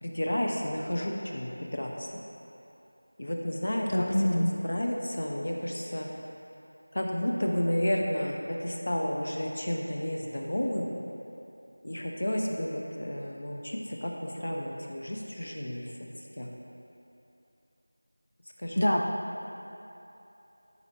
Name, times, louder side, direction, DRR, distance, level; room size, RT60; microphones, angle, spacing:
voice 1, 0.0-2.2 3.2-6.1 6.9-11.0 11.8-15.8 16.4-16.5 18.6-18.9, left 1 dB, 55° left, 0 dB, 0.9 m, -31 dB
voice 2, 3.9-4.5 18.8-19.0, left 1 dB, 90° left, 1 dB, 0.8 m, -25 dB
13.5 x 5.6 x 3.0 m, 3.0 s
figure-of-eight pair, 175°, 0 cm